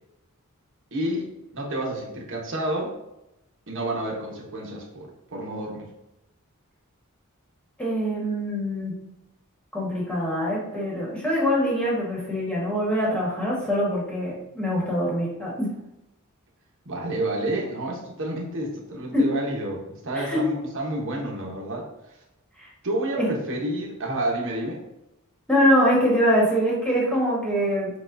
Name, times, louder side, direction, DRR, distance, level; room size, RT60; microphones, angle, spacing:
voice 1, 0.9-2.9 3.7-5.9 16.8-21.9 22.8-24.8, right 1 dB, 60° right, -2 dB, 1.1 m, -29 dB
voice 2, 7.8-8.9 9.7-15.7 19.1-19.3 20.1-20.4 22.6-22.7 23.2-23.3 25.5-27.9, equal, 5° left, -5 dB, 1.3 m, -23 dB
7.0 x 2.4 x 2.6 m, 0.90 s
head